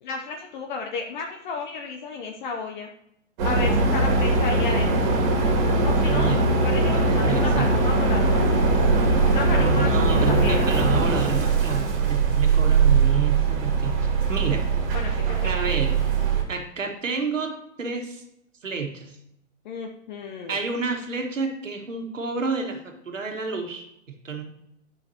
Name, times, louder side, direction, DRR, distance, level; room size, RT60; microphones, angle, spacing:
voice 1, 0.0-2.9 3.4-5.1 5.8-8.5 9.3-10.7 14.9-15.7 19.6-20.6, left 4 dB, 40° left, 3 dB, 0.8 m, -33 dB
sound 1, 3.4-16.4, right 3 dB, 35° right, 2.3 m, -21 dB
voice 2, 6.0-6.4 6.8-7.7 9.6-14.7 15.4-16.0 16.5-18.2 18.6-19.2 20.5-23.8 24.2-24.4, right 5 dB, 80° right, 3 dB, 1.6 m, -29 dB
11.0 x 5.7 x 2.9 m, 0.79 s
hypercardioid pair, 125°, 37 cm